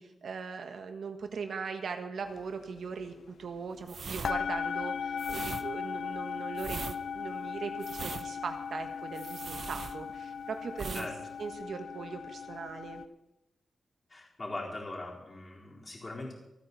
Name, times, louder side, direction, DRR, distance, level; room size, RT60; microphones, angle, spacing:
voice 1, 0.0-11.1 11.4-13.0, right 5 dB, 70° right, 6 dB, 1.6 m, -40 dB
sound 1, 2.4-2.5 2.8-3.9 4.2-13.1, left 6 dB, 85° left, 0.6 m, -38 dB
sound 2, 3.8-10.4 10.7-11.1 11.4-11.6, right 5 dB, 50° right, 0.6 m, -41 dB
voice 2, 14.1-16.3, left 2 dB, 25° left, -3 dB, 4.2 m, -40 dB
27.5 x 9.2 x 4.3 m, 0.90 s
wide cardioid pair, 150°, 0 cm